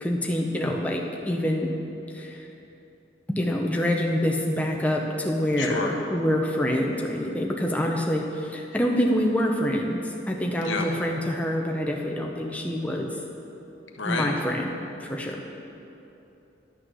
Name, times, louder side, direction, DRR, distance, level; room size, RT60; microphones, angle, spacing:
voice 1, 0.0-1.7 2.1-2.5 3.3-10.0 10.3-13.1 14.0-14.7 15.0-15.4, equal, 10° left, 0 dB, 0.7 m, -26 dB
voice 2, 5.6-5.9 10.6-10.9 14.0-14.3, left 4 dB, 85° left, 1 dB, 1.2 m, -29 dB
11.0 x 6.4 x 6.4 m, 2.9 s
head